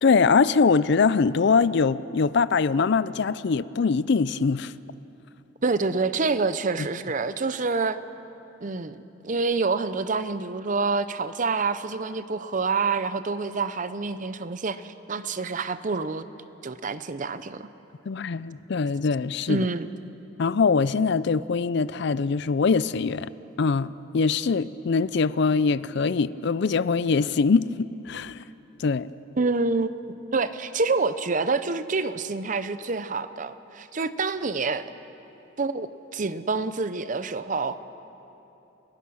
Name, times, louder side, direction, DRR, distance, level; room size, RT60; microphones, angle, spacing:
voice 1, 0.0-4.7 18.1-19.7 20.4-23.3 23.6-28.4 28.8-29.1, left 5 dB, 60° left, 17 dB, 0.4 m, -23 dB
voice 2, 5.6-8.0 8.6-16.2 16.6-17.7 19.5-19.9 29.4-29.9 30.3-34.8 35.6-37.8, right 4 dB, 40° right, 13 dB, 0.7 m, -27 dB
29.5 x 16.0 x 6.3 m, 3.0 s
head